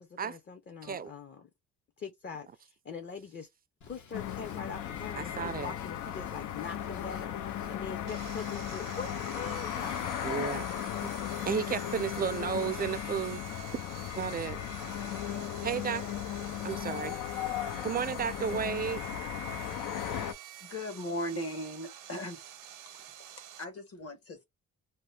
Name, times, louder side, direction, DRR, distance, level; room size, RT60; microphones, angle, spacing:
voice 1, 0.0-1.5 2.0-3.5 3.8-10.4, left 5 dB, 35° left, 0.6 m, -43 dB
Drum kit / Drum, 3.8-13.0, left 4 dB, 70° left, 1.2 m, -54 dB
sound 1, 4.1-20.3, left 10 dB, 90° left, 0.6 m, -36 dB
voice 2, 5.1-5.7 10.2-10.7 11.0-11.1 11.5-13.4 14.2-14.7 15.6-16.1 16.6-17.2 17.8-19.0, right 7 dB, 30° right, 0.4 m, -33 dB
Sawing, 8.1-23.6, right 11 dB, 85° right, 0.8 m, -48 dB
voice 3, 20.6-22.4 22.9-23.0 23.6-24.4, equal, 50° left, 1.2 m, -38 dB
2.8 x 2.1 x 3.2 m
cardioid pair, 100°, 30 cm